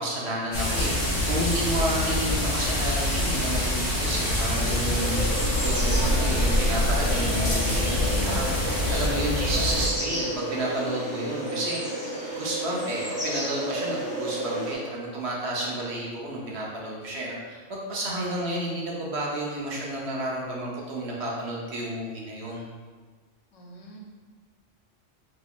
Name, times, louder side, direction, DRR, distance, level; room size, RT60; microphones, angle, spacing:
voice 1, 0.0-12.0 12.3-22.7, right 1 dB, 65° right, -3 dB, 0.9 m, -31 dB
sound 1, 0.5-9.9, left 1 dB, 50° left, 1.3 m, -25 dB
sound 2, 5.0-14.7, right 1 dB, 10° right, 1.2 m, -32 dB
voice 2, 5.2-5.6 23.5-24.0, right 1 dB, 75° left, -1 dB, 0.9 m, -48 dB
3.9 x 2.9 x 2.2 m, 1.5 s
omnidirectional pair, 1.3 m